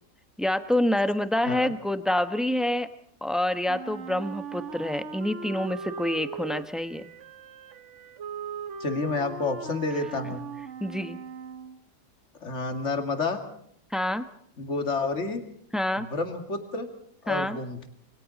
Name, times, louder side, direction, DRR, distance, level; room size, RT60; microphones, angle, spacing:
voice 1, 0.4-2.9 3.2-7.1 10.8-11.2 13.9-14.2 15.7-16.1 17.3-17.6, left 1 dB, ahead, 10 dB, 0.9 m, -27 dB
Wind instrument woodwind instrument, 3.7-11.8, right 5 dB, 50° right, 1.3 m, -39 dB
voice 2, 8.8-10.4 12.4-13.4 14.6-15.4 16.0-16.9 17.2-17.9, left 3 dB, 45° left, 6 dB, 2.6 m, -29 dB
28.5 x 23.5 x 4.1 m, 0.67 s
omnidirectional pair, 1.8 m